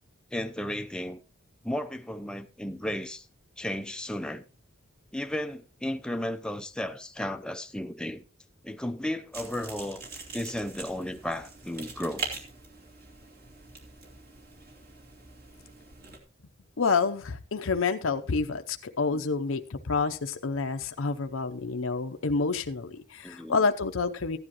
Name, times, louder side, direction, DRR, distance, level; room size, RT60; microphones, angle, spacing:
voice 1, 0.3-1.2 1.6-3.3 3.6-4.4 5.1-8.2 8.6-10.0 10.3-12.3 19.1-19.2 23.2-23.7, left 1 dB, 5° left, 0.6 m, -34 dB
sound 1, 9.3-16.2, right 4 dB, 45° right, 2.7 m, -42 dB
voice 2, 16.8-24.4, left 4 dB, 70° left, 0.7 m, -28 dB
15.0 x 9.9 x 3.0 m
head